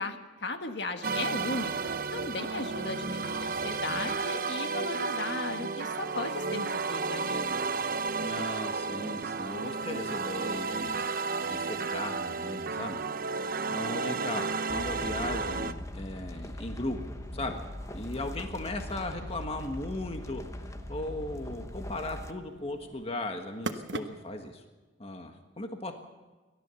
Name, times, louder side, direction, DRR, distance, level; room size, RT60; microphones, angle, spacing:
voice 1, 0.0-7.5, left 2 dB, 60° left, 6 dB, 1.7 m, -36 dB
sound 1, 1.0-15.7, right 4 dB, 50° right, 0.8 m, -32 dB
voice 2, 8.2-10.9 11.4-13.0 13.7-17.0 17.3-17.6 17.9-24.6 25.0-25.9, left 2 dB, 30° left, 5 dB, 1.5 m, -37 dB
sound 2, 11.7-24.5, right 2 dB, 70° right, 1.2 m, -47 dB
sound 3, 14.7-22.3, left 1 dB, 15° left, 0.9 m, -41 dB
29.5 x 13.0 x 7.0 m, 1.3 s
head